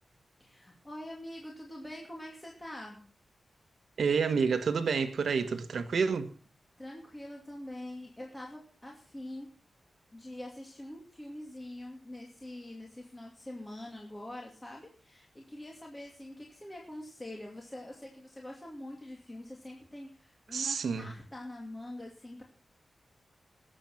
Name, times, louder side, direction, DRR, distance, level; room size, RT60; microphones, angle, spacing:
voice 1, 0.4-3.0 6.8-9.5 10.1-22.4, left 1 dB, 15° left, 2.5 m, -44 dB
voice 2, 4.0-6.3 20.5-21.1, right 5 dB, 75° right, 1.4 m, -29 dB
19.5 x 7.9 x 5.9 m
wide cardioid pair, 145°, 0 cm